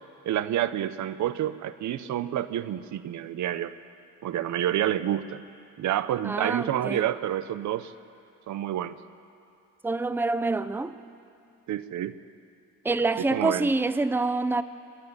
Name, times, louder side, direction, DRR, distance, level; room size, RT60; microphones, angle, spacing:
voice 1, 0.2-3.7 4.2-5.4 5.8-7.9 8.5-9.0 11.7-12.2 13.2-13.7, right 11 dB, 70° right, 0.8 m, -28 dB
voice 2, 6.2-7.0 9.8-11.0 12.8-14.6, right 3 dB, 5° right, 0.6 m, -26 dB
24.5 x 11.5 x 9.6 m
cardioid pair, 90°, 30 cm